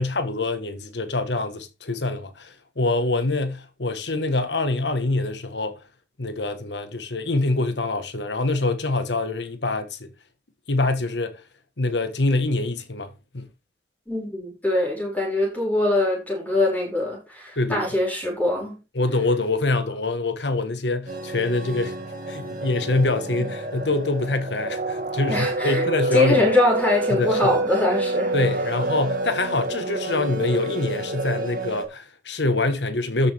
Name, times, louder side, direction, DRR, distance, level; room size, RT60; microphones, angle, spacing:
voice 1, 0.0-5.8 6.2-10.1 10.7-11.4 11.8-13.5 17.6-17.8 18.9-22.0 22.3-26.5 27.1-27.6 28.3-33.3, left 2 dB, 85° left, 1.5 m, -25 dB
voice 2, 14.1-18.8 23.4-23.5 25.3-25.9 26.1-28.3, left 1 dB, 10° left, 6.2 m, -23 dB
sound 1, 21.1-31.8, right 2 dB, 50° right, 2.2 m, -28 dB
13.0 x 6.9 x 3.6 m
head